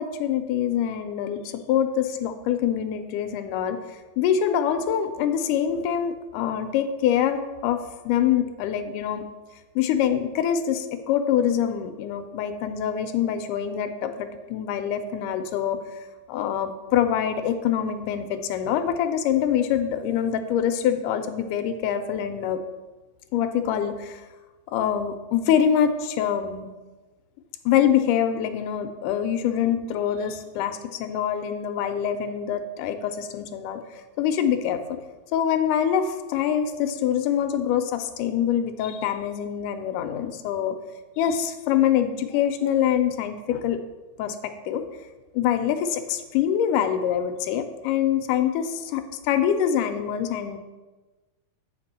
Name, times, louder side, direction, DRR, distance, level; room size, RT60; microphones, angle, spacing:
voice 1, 0.0-3.8 4.2-9.2 9.8-15.8 16.3-22.6 23.3-24.3 24.7-26.7 27.7-35.0 35.3-40.8 41.2-43.8 44.2-44.8 45.3-50.6, left 9 dB, 80° left, 8 dB, 2.2 m, -25 dB
8.6 x 5.9 x 4.3 m, 1.2 s
omnidirectional pair, 3.8 m